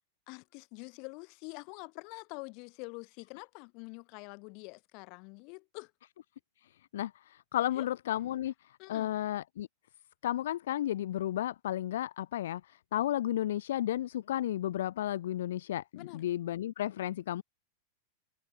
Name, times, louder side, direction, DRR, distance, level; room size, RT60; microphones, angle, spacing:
voice 1, 0.3-5.9 7.7-7.9 8.8-9.1 15.9-16.3, left 33 dB, 45° left, 1.2 m, -46 dB
voice 2, 6.9-8.5 8.9-9.7 10.2-17.4, left 12 dB, 60° left, 0.4 m, -33 dB
figure-of-eight pair, 90°, 0 cm